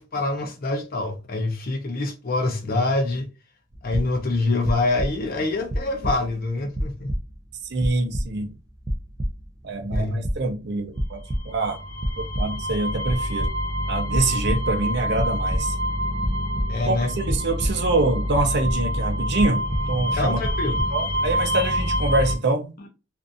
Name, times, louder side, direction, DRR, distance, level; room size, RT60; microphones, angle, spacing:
voice 1, 0.0-3.3 3.8-7.1 9.8-10.2 16.7-17.1 20.2-20.8, left 2 dB, 45° left, 0.5 m, -25 dB
sound 1, 3.7-4.4 4.6-5.4 5.7-6.5 6.7-7.5 7.8-8.6 8.9-9.6 9.9-10.7 11.0-11.6 11.9-12.8 13.1-13.8 14.1-14.9 15.2-15.8 16.2-18.0 18.3-19.1 19.4-20.1 20.4-20.8, equal, 15° right, 0.3 m, -29 dB
voice 2, 7.6-8.5 9.6-11.2 11.4-11.8 12.2-13.5 13.9-15.7 16.9-20.4 20.9-22.8, right 2 dB, 55° right, 0.6 m, -25 dB
sound 2, 11.3-22.4, equal, 35° right, 1.0 m, -27 dB
2.5 x 2.4 x 2.5 m
head